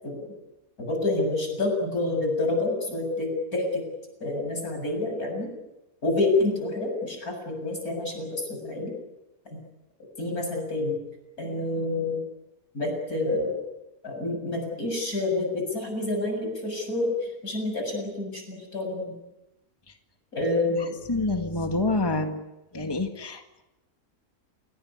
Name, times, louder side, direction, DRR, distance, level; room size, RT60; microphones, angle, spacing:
voice 1, 0.8-3.8 4.2-5.5 6.0-8.9 9.5-9.6 10.2-11.0 11.4-12.2 12.7-13.5 14.0-19.2 20.3-21.0, left 2 dB, 75° left, 2 dB, 7.9 m, -28 dB
voice 2, 20.8-22.4 22.7-23.6, left 2 dB, 15° left, 5 dB, 1.8 m, -28 dB
28.5 x 18.0 x 9.8 m, 0.98 s
omnidirectional pair, 1.6 m